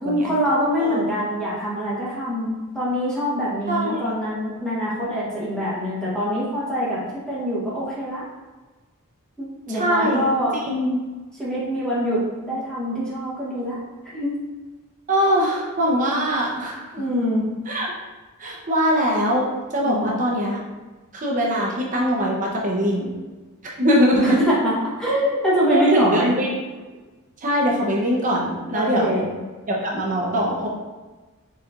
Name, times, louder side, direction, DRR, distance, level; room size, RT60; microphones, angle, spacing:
voice 1, 0.0-8.3 9.4-10.5 11.4-13.8 14.1-14.3 16.9-17.5 19.8-20.1 24.2-26.3 28.7-29.3, equal, 5° left, -8 dB, 1.2 m, -24 dB
voice 2, 3.7-4.0 9.7-10.2 10.5-11.0 15.1-16.9 17.7-17.9 18.4-20.6 21.1-23.1 23.8-24.4 25.7-26.6 27.4-29.3 29.7-30.7, equal, 35° right, -2 dB, 0.8 m, -22 dB
4.4 x 4.1 x 2.5 m, 1.3 s
head